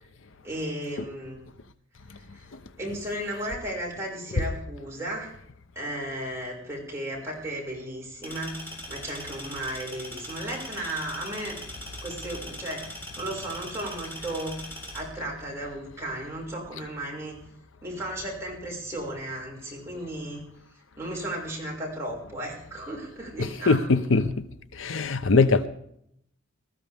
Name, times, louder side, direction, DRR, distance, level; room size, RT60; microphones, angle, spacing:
voice 1, 0.4-1.4 2.1-2.5 2.8-5.3 5.8-11.6 12.0-12.9 13.2-14.6 14.9-17.4 17.8-20.4 21.0-23.8, right 1 dB, 15° right, 5.6 m, -35 dB
sound 1, 8.2-15.0, equal, 10° left, 5.3 m, -41 dB
voice 2, 23.4-24.4 24.8-25.7, left 3 dB, 70° left, 0.8 m, -22 dB
20.0 x 13.5 x 3.5 m
head